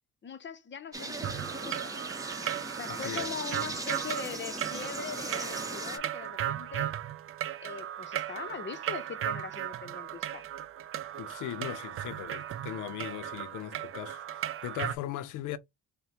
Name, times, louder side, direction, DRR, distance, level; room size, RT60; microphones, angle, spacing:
voice 1, 0.2-1.9 2.7-6.9 7.6-10.5, left 6 dB, 40° left, 0.7 m, -41 dB
sound 1, 0.9-6.0, right 2 dB, 10° right, 1.0 m, -38 dB
sound 2, 1.2-15.0, right 11 dB, 45° right, 0.4 m, -36 dB
voice 2, 2.4-3.4 11.2-15.6, left 12 dB, 85° left, 0.5 m, -39 dB
5.5 x 2.1 x 2.7 m
cardioid pair, 90°, 30 cm